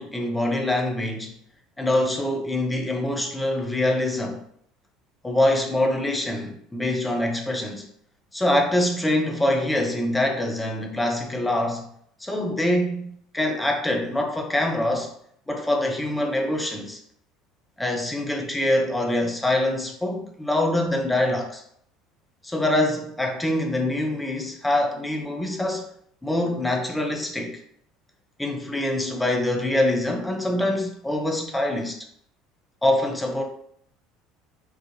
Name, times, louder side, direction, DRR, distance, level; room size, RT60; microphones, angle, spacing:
voice 1, 0.0-1.3 1.8-4.4 5.2-7.9 8.3-11.9 12.2-15.1 15.5-17.0 17.8-21.6 22.4-25.9 26.2-27.6 28.4-32.0 32.8-33.4, left 1 dB, 10° left, 0.6 m, -24 dB
3.8 x 2.4 x 2.8 m
figure-of-eight pair, 65°, 0 cm